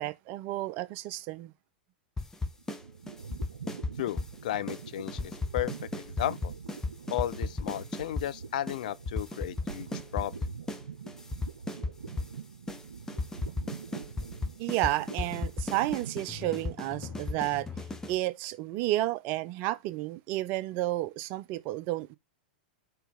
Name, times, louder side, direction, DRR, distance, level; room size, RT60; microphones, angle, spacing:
voice 1, 0.0-1.5 14.6-17.7 18.1-22.2, right 16 dB, 45° right, 0.6 m, -31 dB
sound 1, 2.2-2.8 3.1-4.3 4.7-4.8 5.1-8.3 8.7-8.8 9.0-10.8 11.1-12.3 12.7-12.8 13.1-18.2, left 3 dB, 10° left, 1.1 m, -35 dB
sound 2, 2.4-17.9, right 6 dB, 80° right, 0.7 m, -45 dB
voice 2, 4.0-5.2 5.5-6.5 7.1-10.5, left 13 dB, 60° left, 0.5 m, -34 dB
4.6 x 4.1 x 5.4 m
figure-of-eight pair, 95°, 5 cm